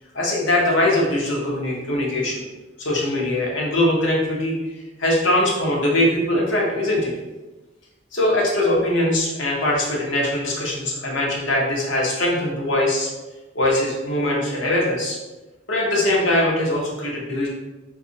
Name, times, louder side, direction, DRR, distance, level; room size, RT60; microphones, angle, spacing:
voice 1, 0.1-2.4 2.8-4.6 5.0-7.1 8.1-13.1 13.5-15.2 15.7-17.5, left 1 dB, 80° left, -3 dB, 0.9 m, -21 dB
2.6 x 2.5 x 3.9 m, 1.1 s
head